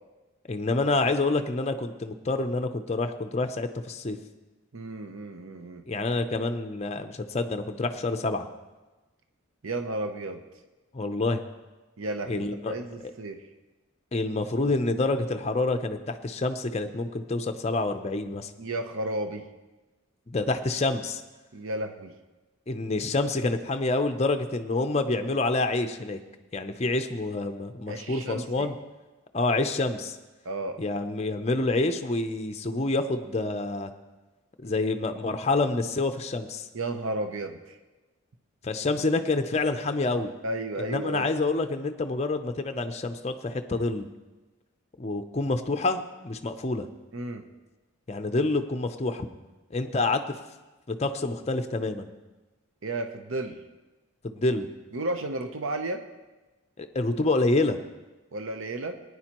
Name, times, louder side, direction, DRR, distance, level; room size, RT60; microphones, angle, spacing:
voice 1, 0.5-4.2 5.9-8.5 10.9-11.4 12.3-12.7 14.1-18.5 20.3-21.2 22.7-26.2 26.5-28.7 29.3-30.2 30.8-33.9 34.6-36.7 38.6-40.3 40.8-44.1 45.0-46.9 48.1-49.3 49.7-50.4 50.9-52.1 54.2-54.7 56.8-57.8, left 2 dB, 30° left, 7 dB, 0.5 m, -27 dB
voice 2, 4.7-5.8 9.6-10.4 12.0-13.4 18.6-19.4 21.5-22.1 27.9-28.7 30.4-30.8 36.7-37.8 40.4-41.3 47.1-47.4 52.8-53.6 54.9-56.0 58.3-58.9, right 2 dB, 65° right, 6 dB, 0.8 m, -33 dB
19.0 x 9.7 x 3.0 m, 1.1 s
head